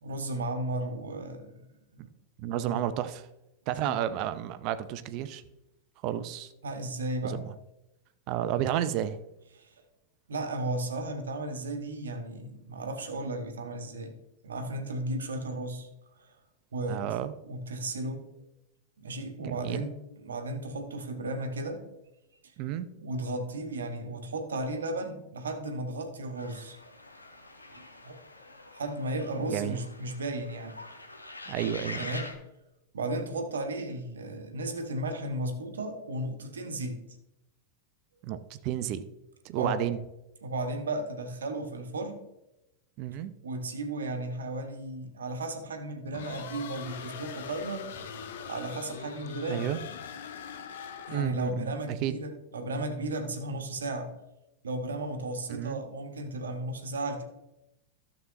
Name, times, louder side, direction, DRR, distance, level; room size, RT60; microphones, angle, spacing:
voice 1, 0.0-1.7 1.9-2.1 2.7-2.8 3.8-3.9 6.6-7.4 9.6-9.7 10.3-14.1 14.4-15.9 16.2-16.3 16.7-17.1 17.4-18.3 19.0-21.9 23.0-26.8 27.7-28.2 28.7-30.8 32.0-32.4 32.9-37.0 39.6-39.8 40.4-42.2 43.4-47.8 48.4-49.7 51.1-54.2 54.6-57.2, right 2 dB, 70° right, 6 dB, 1.2 m, -34 dB
voice 2, 2.4-3.2 3.7-5.4 6.0-6.5 7.2-7.5 8.3-9.2 16.9-17.3 19.4-19.8 22.6-22.9 29.5-29.8 31.5-32.1 38.2-39.0 39.4-40.0 43.0-43.3 49.5-49.8 51.1-52.2 55.5-55.8, right 11 dB, 40° right, 13 dB, 0.6 m, -31 dB
sound 1, 26.4-32.4, left 2 dB, 85° left, 1.0 m, -45 dB
sound 2, 46.1-51.5, left 7 dB, 60° left, 0.9 m, -42 dB
12.5 x 7.2 x 3.0 m, 0.90 s
figure-of-eight pair, 90°, 0 cm